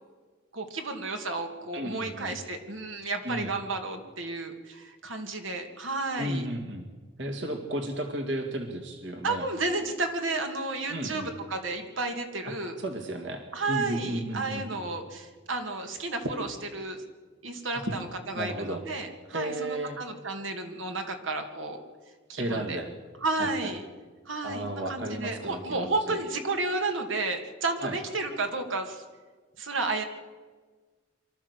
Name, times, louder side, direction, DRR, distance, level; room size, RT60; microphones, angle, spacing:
voice 1, 0.5-6.5 9.2-12.8 13.5-17.0 17.4-21.8 22.3-22.8 23.2-23.8 24.3-29.0 29.6-30.0, right 3 dB, 80° right, 5 dB, 2.4 m, -32 dB
voice 2, 1.7-2.4 3.2-3.5 6.2-6.9 7.2-9.5 10.9-11.3 12.4-13.4 13.7-14.9 17.7-17.8 18.4-18.8 19.3-20.0 22.4-22.9 23.4-23.7 24.4-26.2 27.8-28.0, right 1 dB, 65° right, 4 dB, 2.2 m, -34 dB
24.0 x 13.5 x 8.2 m, 1.4 s
head